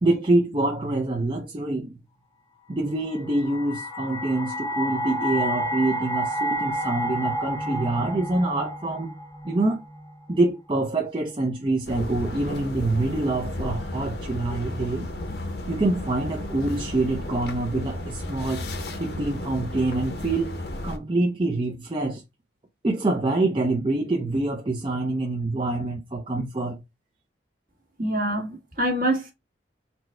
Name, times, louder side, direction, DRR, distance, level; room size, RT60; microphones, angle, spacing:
voice 1, 0.0-2.0 2.7-9.1 9.4-9.8 10.3-15.1 15.7-18.7 18.9-22.2 22.8-26.8, right 2 dB, 30° right, 0.5 m, -26 dB
sound 1, 3.1-10.2, equal, 15° left, 0.8 m, -30 dB
sound 2, 11.9-21.0, left 1 dB, 60° left, 0.7 m, -33 dB
voice 2, 28.0-29.3, right 1 dB, 50° right, 1.6 m, -25 dB
4.3 x 2.2 x 4.2 m
head